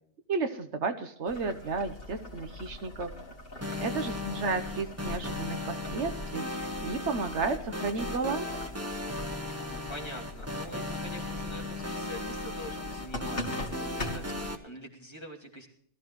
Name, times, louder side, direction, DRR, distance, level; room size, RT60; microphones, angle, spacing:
voice 1, 0.3-3.1 3.8-8.5, right 4 dB, 70° right, 9 dB, 1.2 m, -33 dB
Boiling, 1.3-14.5, left 1 dB, 50° left, 2.9 m, -42 dB
sound 1, 3.6-14.6, left 2 dB, 15° right, 1.1 m, -37 dB
voice 2, 9.7-15.7, equal, 20° left, -1 dB, 2.6 m, -45 dB
21.5 x 14.0 x 3.1 m, 0.64 s
omnidirectional pair, 1.3 m